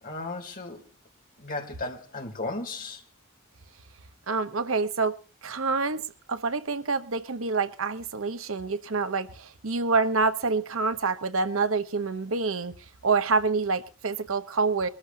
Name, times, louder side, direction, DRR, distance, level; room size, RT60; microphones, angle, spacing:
voice 1, 0.0-0.9 1.4-3.0, left 2 dB, 40° left, 3.0 m, -35 dB
voice 2, 4.3-5.2 5.4-6.0 6.3-12.8 13.0-14.9, right 4 dB, 80° right, 1.0 m, -27 dB
23.0 x 13.5 x 2.8 m
head